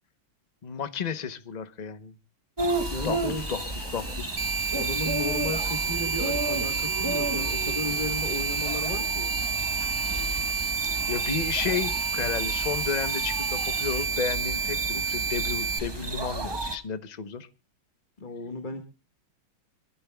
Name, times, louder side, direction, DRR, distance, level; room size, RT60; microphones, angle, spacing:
voice 1, 0.6-2.1 3.0-4.3 6.7-7.2 7.6-7.7 10.3-10.4 11.1-17.5, left 6 dB, 70° left, 12 dB, 0.4 m, -33 dB
sound 1, 2.6-16.8, right 1 dB, 20° right, 0.6 m, -33 dB
sound 2, 2.7-14.0, equal, 5° right, 4.0 m, -42 dB
voice 2, 2.9-3.4 4.7-9.3 18.2-18.8, left 2 dB, 25° left, 6 dB, 1.4 m, -34 dB
sound 3, 4.4-15.8, right 5 dB, 40° right, 1.2 m, -29 dB
27.0 x 12.5 x 2.3 m, 0.30 s
omnidirectional pair, 2.2 m